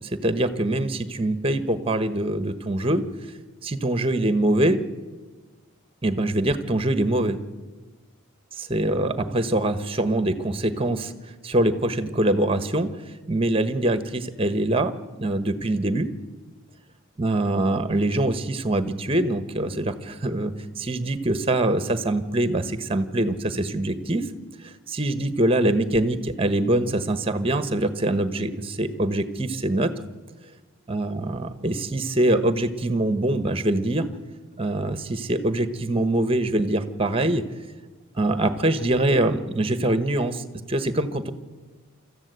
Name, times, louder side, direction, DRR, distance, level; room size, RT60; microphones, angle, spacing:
voice 1, 0.0-3.0 3.6-4.8 6.0-7.4 8.6-11.1 11.4-12.9 13.3-16.1 17.2-24.3 24.6-29.9 30.9-34.1 34.6-37.4 38.2-41.3, right 1 dB, 25° right, 11 dB, 1.2 m, -24 dB
25.5 x 14.5 x 8.2 m, 1.3 s
head